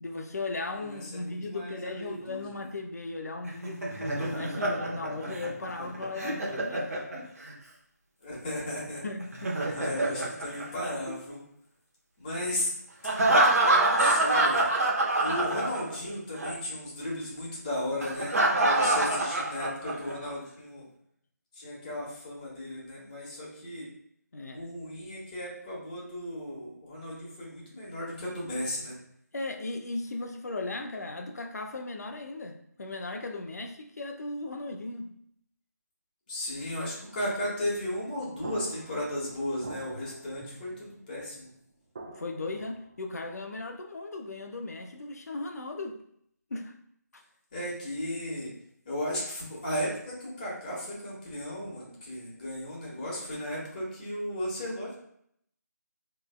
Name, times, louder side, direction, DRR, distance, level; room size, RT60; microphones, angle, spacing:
voice 1, 0.0-6.9 9.0-9.5 18.9-19.1 24.3-24.6 29.3-35.1 42.2-46.0 46.5-46.7 47.1-47.2, left 2 dB, 65° left, 5 dB, 0.7 m, -37 dB
voice 2, 0.8-2.6 8.2-9.0 9.7-11.4 12.2-12.7 13.5-14.7 15.2-20.8 21.5-23.9 24.5-29.0 36.3-41.5 47.5-48.5 48.9-54.9, left 1 dB, 30° left, -5 dB, 1.6 m, -35 dB
Laughter, 3.5-7.5 9.2-11.3 13.0-16.1 16.4-16.5 18.0-20.1, right 2 dB, 55° right, 1.0 m, -26 dB
sound 1, 38.4-41.4 41.9-43.2, right 3 dB, 35° right, 0.6 m, -45 dB
5.1 x 3.3 x 2.2 m, 0.69 s
figure-of-eight pair, 160°, 9 cm